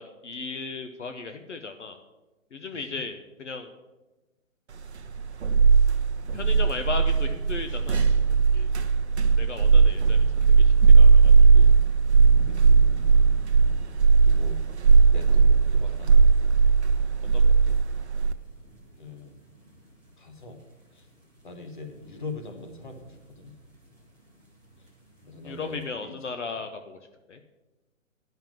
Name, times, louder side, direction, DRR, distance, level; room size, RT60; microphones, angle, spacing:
voice 1, 0.0-2.0 2.5-3.7 6.3-8.7 9.4-11.7 17.3-17.8 25.4-27.0 27.3-27.4, left 4 dB, 60° left, 7 dB, 0.9 m, -37 dB
voice 2, 2.7-3.0 12.5-12.8 14.2-14.6 15.1-16.5 19.0-19.3 20.2-20.6 20.9-21.1 21.4-23.5 25.2-26.1, left 3 dB, 40° left, 5 dB, 1.1 m, -42 dB
sound 1, 4.8-18.3, right 5 dB, 55° right, 0.7 m, -18 dB
sound 2, 9.7-25.8, equal, 15° left, 1.5 m, -47 dB
10.5 x 5.7 x 7.5 m, 1.1 s
hypercardioid pair, 180°, 40 cm